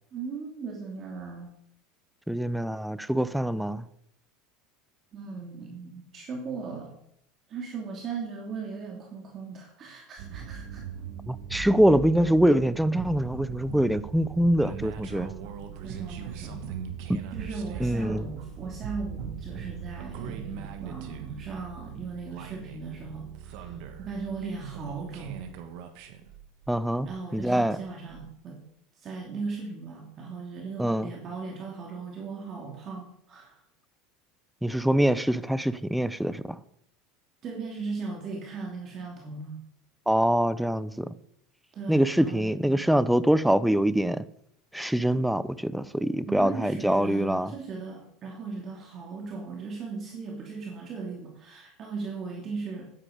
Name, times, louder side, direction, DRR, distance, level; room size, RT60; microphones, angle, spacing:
voice 1, 0.1-1.5 5.1-6.9 7.5-10.8 15.8-16.8 17.3-25.4 27.0-28.6 29.0-33.6 37.4-39.6 41.7-42.5 46.3-52.9, right 4 dB, 40° right, 2.6 m, -38 dB
voice 2, 2.3-3.8 11.3-15.3 17.1-17.2 17.8-18.2 26.7-27.8 30.8-31.1 34.6-36.6 40.1-41.1 41.9-44.2 44.7-47.5, right 1 dB, ahead, 0.7 m, -24 dB
sound 1, 10.2-27.6 28.1-28.3, right 7 dB, 65° right, 1.8 m, -40 dB
12.0 x 10.5 x 5.1 m
supercardioid pair, 100°, 0 cm